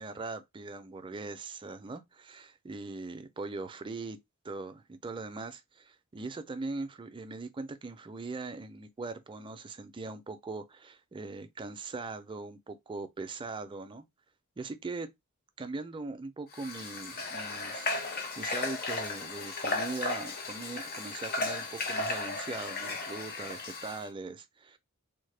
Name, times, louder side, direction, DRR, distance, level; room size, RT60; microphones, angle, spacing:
voice 1, 0.0-4.2 4.4-14.0 14.6-15.1 15.6-24.8, right 3 dB, 25° right, 0.4 m, -40 dB
Water / Water tap faucet, 16.5-24.1, left 3 dB, 45° left, 0.6 m, -35 dB
3.5 x 2.1 x 3.2 m
head